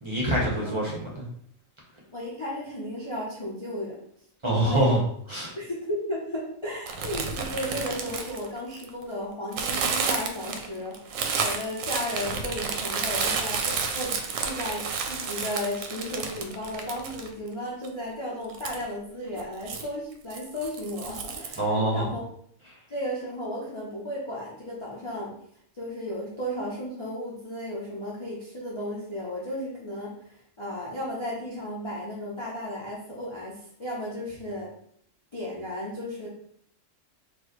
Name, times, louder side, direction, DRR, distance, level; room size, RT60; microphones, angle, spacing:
voice 1, 0.0-1.2 4.4-5.0 5.3-5.5 21.6-22.1, right 1 dB, 25° right, -4 dB, 1.0 m, -25 dB
voice 2, 2.1-4.0 4.5-5.0 5.6-22.2 22.9-25.3 25.8-34.7 35.3-36.3, left 1 dB, 30° left, -6 dB, 0.6 m, -34 dB
sound 1, 6.9-9.0 9.5-17.5 17.8-17.9 18.5-18.8 19.3-19.9 20.3-21.6, right 5 dB, 75° right, 0.9 m, -31 dB
4.5 x 2.5 x 3.0 m, 0.66 s
omnidirectional pair, 1.4 m